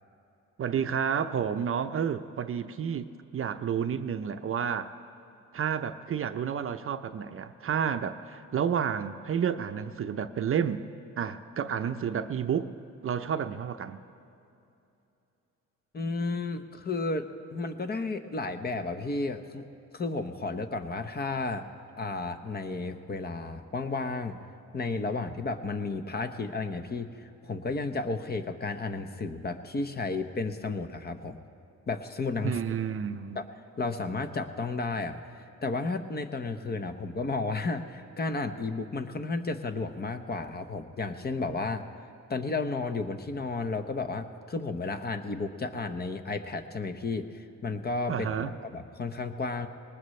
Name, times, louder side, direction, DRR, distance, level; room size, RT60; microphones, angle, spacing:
voice 1, 0.6-4.9 5.5-10.8 11.2-12.7 13.0-14.0 32.4-33.4 48.1-48.5, right 8 dB, 45° right, 10 dB, 0.7 m, -30 dB
voice 2, 15.9-19.7 19.9-21.7 22.0-24.4 24.7-31.4 31.9-32.5 33.3-33.4 33.8-35.2 35.6-41.8 42.3-49.7, left 3 dB, 30° left, 8 dB, 1.0 m, -33 dB
20.5 x 19.0 x 3.2 m, 2.8 s
cardioid pair, 90°, 30 cm